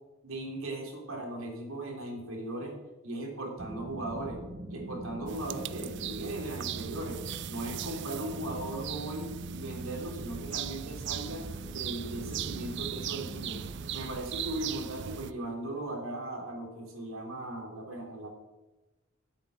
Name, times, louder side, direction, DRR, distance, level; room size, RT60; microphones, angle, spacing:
voice 1, 0.2-2.8 3.0-4.4 4.7-11.5 11.7-13.6 13.9-18.3, right 1 dB, 75° right, 0 dB, 3.2 m, -38 dB
sound 1, 3.6-14.1, right 1 dB, 25° right, 1.1 m, -43 dB
sound 2, 5.3-15.3, right 10 dB, 55° right, 0.4 m, -39 dB
8.5 x 8.3 x 7.3 m, 1.1 s
head